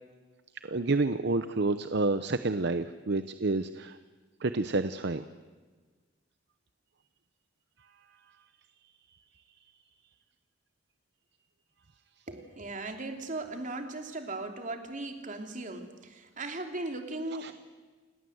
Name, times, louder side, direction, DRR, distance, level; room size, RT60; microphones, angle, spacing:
voice 1, 0.6-4.0 4.4-5.3 17.4-17.5, right 3 dB, 60° right, 11 dB, 0.8 m, -29 dB
voice 2, 12.3-17.5, right 2 dB, 45° right, 5 dB, 2.9 m, -38 dB
29.5 x 19.0 x 8.0 m, 1.4 s
head